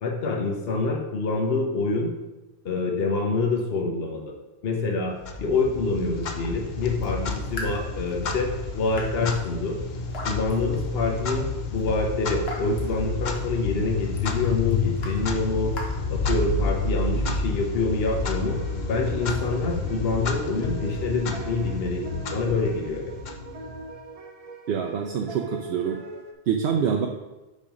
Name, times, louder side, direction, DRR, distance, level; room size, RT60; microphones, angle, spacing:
voice 1, 0.0-2.1 2.6-4.3 4.6-9.8 10.2-15.8 16.1-18.6 18.9-22.0 22.3-23.0, left 3 dB, 70° left, 1 dB, 1.1 m, -26 dB
Clock, 5.2-23.9, left 3 dB, 50° left, 0.8 m, -30 dB
Raindrop / Drip, 6.9-16.8, left 1 dB, 85° left, 1.5 m, -43 dB
sound 1, 18.4-26.3, right 2 dB, 40° right, 0.7 m, -42 dB
voice 2, 24.7-26.0 26.5-27.1, right 7 dB, 75° right, 2 dB, 0.8 m, -25 dB
5.5 x 5.3 x 5.1 m, 1.1 s
omnidirectional pair, 1.0 m